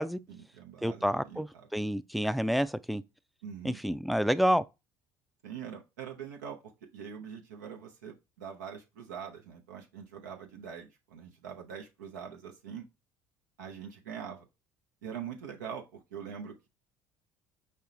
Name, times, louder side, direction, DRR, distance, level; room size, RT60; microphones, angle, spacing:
voice 1, 0.3-1.7 3.4-3.8 5.4-6.6 6.9-12.8 13.6-14.5 15.0-16.7, right 7 dB, 90° right, 0.7 m, -43 dB
voice 2, 0.8-3.0 3.6-4.6, equal, ahead, 0.3 m, -29 dB
5.5 x 2.1 x 3.8 m
hypercardioid pair, 65°, 9 cm